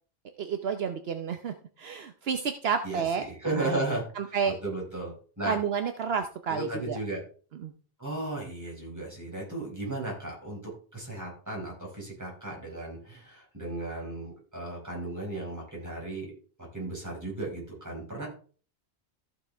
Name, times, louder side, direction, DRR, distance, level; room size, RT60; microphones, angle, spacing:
voice 1, 0.4-3.3 3.6-3.7 4.2-4.6 5.4-7.0 7.6-7.7, right 6 dB, 70° right, 7 dB, 1.0 m, -30 dB
voice 2, 2.8-4.4 4.6-5.6 6.5-7.2 8.0-10.6 10.9-16.3 16.7-18.3, right 2 dB, 15° right, -3 dB, 5.1 m, -35 dB
15.0 x 6.4 x 3.4 m, 0.41 s
omnidirectional pair, 1.1 m